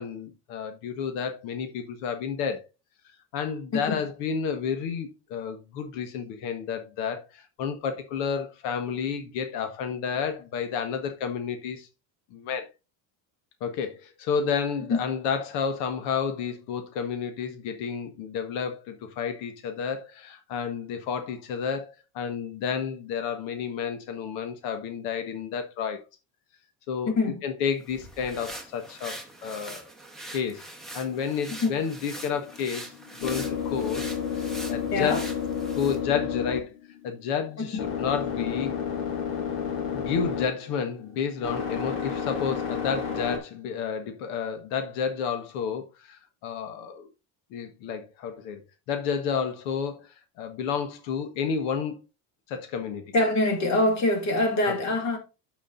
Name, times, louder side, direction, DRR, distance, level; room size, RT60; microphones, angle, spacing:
voice 1, 0.0-2.6 3.3-11.9 12.3-12.7 13.6-26.0 26.9-27.1 27.4-29.9 30.3-30.6 30.9-32.9 33.2-34.0 34.3-35.2 35.8-36.7 37.0-38.7 39.9-47.1 47.5-52.0 52.5-53.0 54.6-54.7, left 6 dB, 85° left, 1.4 m, -31 dB
voice 2, 27.1-27.4 31.5-31.8 34.9-35.2 37.6-37.7 53.1-55.2, left 2 dB, 35° left, 2.5 m, -24 dB
sound 1, 27.8-36.0, right 1 dB, ahead, 0.9 m, -43 dB
sound 2, 32.3-43.4, left 7 dB, 60° left, 2.8 m, -31 dB
12.5 x 5.0 x 2.5 m
cardioid pair, 170°, 49 cm